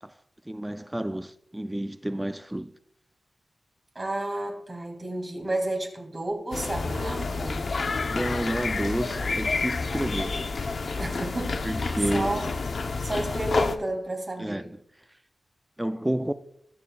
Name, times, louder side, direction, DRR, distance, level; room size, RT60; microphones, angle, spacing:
voice 1, 0.5-2.7 8.1-10.4 11.6-12.5 14.4-14.7 15.8-16.3, right 1 dB, 10° right, 0.3 m, -30 dB
voice 2, 3.9-7.6 11.0-11.9 12.1-12.5 13.0-14.7, right 1 dB, 35° right, 2.1 m, -31 dB
sound 1, 6.5-13.8, left 4 dB, 60° left, 0.6 m, -29 dB
20.0 x 6.8 x 2.3 m
wide cardioid pair, 135°, 0 cm